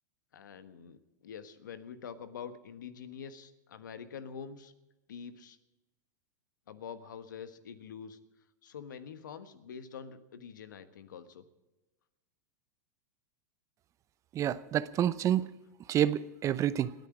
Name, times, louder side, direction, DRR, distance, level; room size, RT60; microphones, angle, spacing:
voice 1, 0.3-4.7 5.1-5.6 6.7-8.2 8.6-11.4, left 7 dB, 80° left, 11 dB, 1.3 m, -46 dB
voice 2, 14.3-15.5 15.9-16.9, right 11 dB, 30° right, 16 dB, 0.7 m, -28 dB
28.0 x 9.4 x 4.9 m, 1.0 s
hypercardioid pair, 110°, 10 cm